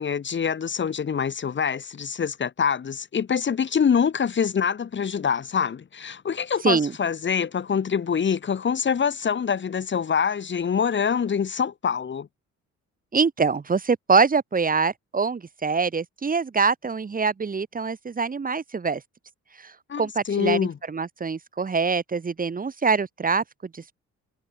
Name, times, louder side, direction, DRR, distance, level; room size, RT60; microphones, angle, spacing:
voice 1, 0.0-12.3 19.9-20.0 20.3-20.7, left 7 dB, 40° left, 1.3 m, -25 dB
voice 2, 13.1-19.0 19.6-23.4 23.7-23.9, right 5 dB, 30° right, 1.2 m, -24 dB
cardioid pair, 90°, 30 cm